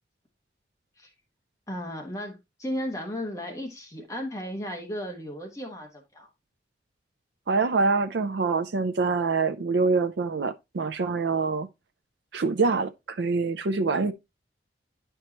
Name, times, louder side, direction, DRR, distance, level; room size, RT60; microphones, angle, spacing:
voice 1, 1.7-6.3, equal, 15° left, 1.2 m, -35 dB
voice 2, 7.5-11.7 12.3-14.1, right 4 dB, 70° right, 0.5 m, -25 dB
10.5 x 4.5 x 2.9 m
head